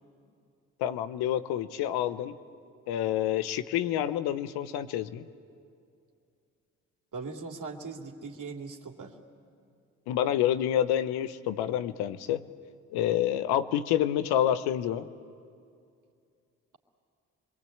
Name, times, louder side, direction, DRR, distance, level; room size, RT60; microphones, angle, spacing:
voice 1, 0.8-2.3 2.9-5.2 10.1-12.4 12.9-15.1, left 11 dB, 75° left, 12 dB, 0.9 m, -28 dB
voice 2, 7.1-9.2, right 4 dB, 50° right, 2 dB, 2.8 m, -40 dB
26.5 x 22.5 x 8.7 m, 2.4 s
hypercardioid pair, 45°, 38 cm